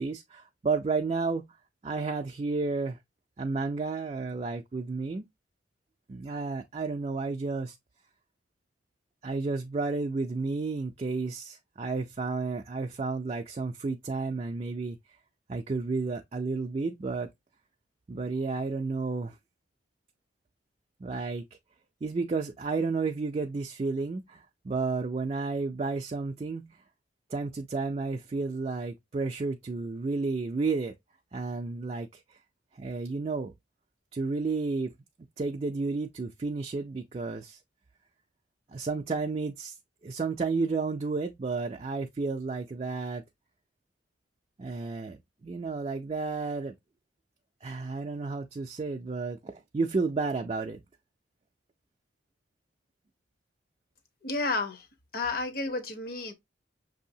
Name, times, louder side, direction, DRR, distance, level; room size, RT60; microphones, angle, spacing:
voice 1, 0.0-1.4 1.8-3.0 3.4-5.3 6.1-7.8 9.2-15.0 15.5-17.3 18.1-19.4 21.0-21.5 22.0-26.8 27.3-30.9 31.3-32.4 32.7-33.5 34.1-34.9 35.4-37.6 38.7-39.8 40.0-43.2 44.6-46.7 47.6-50.8, right 4 dB, 30° right, 0.3 m, -32 dB
voice 2, 54.2-54.9 55.1-56.3, left 3 dB, 50° left, 0.9 m, -31 dB
5.9 x 2.7 x 2.7 m
head